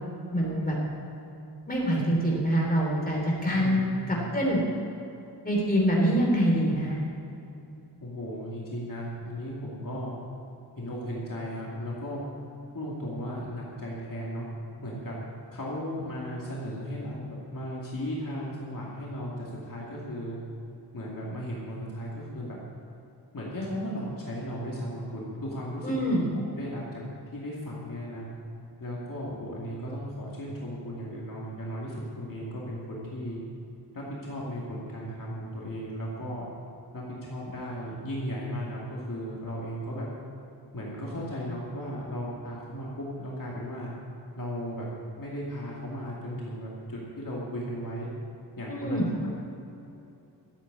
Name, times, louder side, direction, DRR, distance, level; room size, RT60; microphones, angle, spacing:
voice 1, 0.3-0.8 1.7-4.6 5.4-7.0 25.8-26.3 48.7-49.1, equal, 20° left, -3 dB, 3.3 m, -25 dB
voice 2, 3.5-4.3 8.0-10.1 10.8-12.3 12.7-14.5 14.8-15.1 15.5-20.4 20.9-22.6 23.3-26.2 26.5-27.0 27.3-28.3 28.8-33.4 33.9-36.5 36.9-40.1 40.7-43.9 44.4-44.9 45.2-48.1 48.6-49.3, equal, 50° left, -5 dB, 2.4 m, -36 dB
13.0 x 8.3 x 8.5 m, 2.9 s
wide cardioid pair, 135°, 42 cm